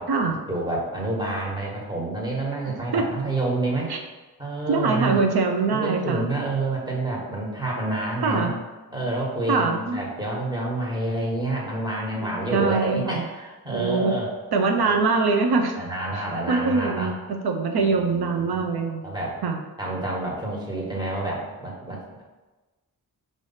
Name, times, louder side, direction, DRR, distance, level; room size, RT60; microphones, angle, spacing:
voice 1, 0.0-3.9 4.4-5.2 5.7-8.5 8.9-14.3 14.7-14.8 15.8-17.1 17.7-18.7 19.0-19.4 19.8-22.2, right 2 dB, 10° right, -4 dB, 1.4 m, -28 dB
voice 2, 2.7-3.0 3.9-4.0 4.7-6.3 8.2-8.5 9.5-10.0 12.2-13.3 13.7-14.2 14.5-15.7 16.1-19.0 19.4-19.6, right 4 dB, 80° right, 4 dB, 0.6 m, -23 dB
5.4 x 3.1 x 5.5 m, 1.2 s
wide cardioid pair, 125°, 38 cm